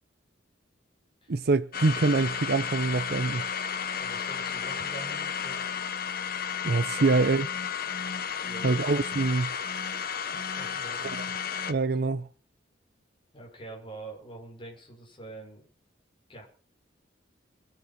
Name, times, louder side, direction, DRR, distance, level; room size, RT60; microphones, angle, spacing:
voice 1, 1.3-3.5 6.6-7.5 8.6-9.6 11.0-11.2 11.6-12.3, right 3 dB, 55° right, 0.6 m, -25 dB
sound 1, 1.7-11.7, left 7 dB, 50° left, 1.0 m, -33 dB
voice 2, 4.0-5.8 7.0-7.5 8.4-8.8 10.5-11.4 13.3-15.7 16.3-16.4, right 2 dB, 30° left, 5.9 m, -45 dB
22.5 x 8.2 x 5.8 m
head